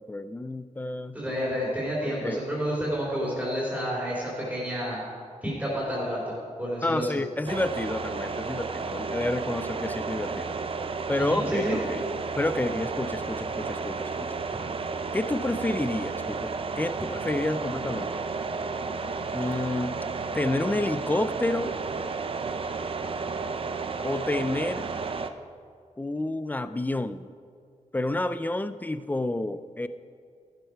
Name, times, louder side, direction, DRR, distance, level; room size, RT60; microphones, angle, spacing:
voice 1, 0.0-1.2 2.0-2.4 6.8-10.6 11.1-12.0 12.4-14.3 15.1-18.1 19.3-20.0 20.3-21.7 24.0-24.9 26.0-27.3 27.9-29.9, left 2 dB, 15° left, 12 dB, 0.5 m, -29 dB
voice 2, 1.1-5.0 5.4-7.0 11.2-11.8, equal, 10° right, -6 dB, 3.4 m, -30 dB
sound 1, 7.5-25.3, right 4 dB, 45° right, 0.6 m, -32 dB
14.0 x 12.0 x 4.6 m, 2.1 s
wide cardioid pair, 135°, 13 cm